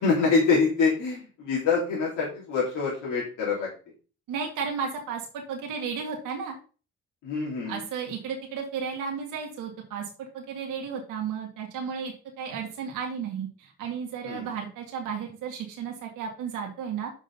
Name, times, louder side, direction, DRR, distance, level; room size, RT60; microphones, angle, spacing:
voice 1, 0.0-3.7 7.2-7.8 14.2-14.5, left 4 dB, 80° left, -6 dB, 3.4 m, -25 dB
voice 2, 4.3-6.5 7.7-17.1, right 6 dB, 80° right, 1 dB, 2.0 m, -33 dB
6.3 x 6.2 x 5.4 m, 0.37 s
supercardioid pair, 70°, 31 cm